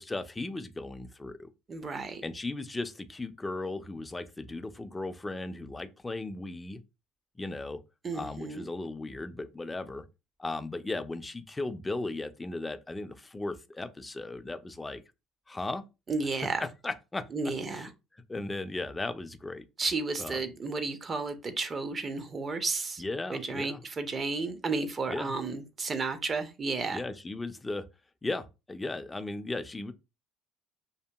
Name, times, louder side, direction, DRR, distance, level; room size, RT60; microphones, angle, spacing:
voice 1, 0.0-1.5 2.2-6.8 7.4-7.8 8.1-10.0 10.4-15.0 15.5-15.8 16.6-17.9 18.3-19.6 20.2-20.4 23.0-23.8 25.1-25.3 26.9-27.9 28.2-29.9, left 2 dB, 20° left, 0.3 m, -36 dB
voice 2, 1.7-2.2 8.0-8.7 16.1-16.7 17.3-17.9 19.8-23.0 23.3-27.0, right 3 dB, 35° right, 0.5 m, -32 dB
2.8 x 2.5 x 2.2 m
supercardioid pair, 75°, 0 cm